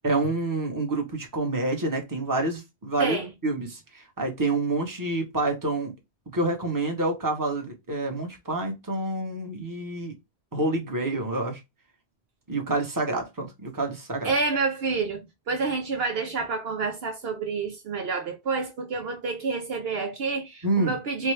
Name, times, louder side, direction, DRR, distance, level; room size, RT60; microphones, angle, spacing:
voice 1, 0.0-5.9 6.3-10.1 10.5-11.6 12.5-14.3 20.6-21.0, right 2 dB, 20° right, 1.0 m, -28 dB
voice 2, 3.0-3.3 14.2-21.3, right 4 dB, 65° right, 0.9 m, -28 dB
4.5 x 2.2 x 3.2 m
omnidirectional pair, 1.1 m